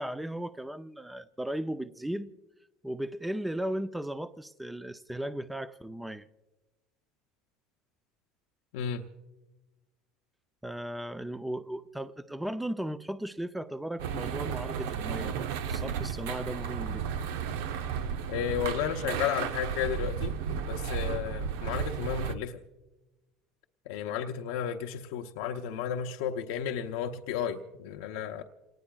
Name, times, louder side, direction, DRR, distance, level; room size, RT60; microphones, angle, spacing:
voice 1, 0.0-2.3 2.8-6.3 10.6-17.3, right 1 dB, 5° right, 10 dB, 0.5 m, -36 dB
sound 1, 14.0-22.3, right 7 dB, 85° right, 0.7 m, -33 dB
voice 2, 18.3-22.6 23.9-28.4, left 8 dB, 80° left, 4 dB, 0.7 m, -33 dB
27.5 x 18.5 x 2.4 m, 1.1 s
supercardioid pair, 120°, 0 cm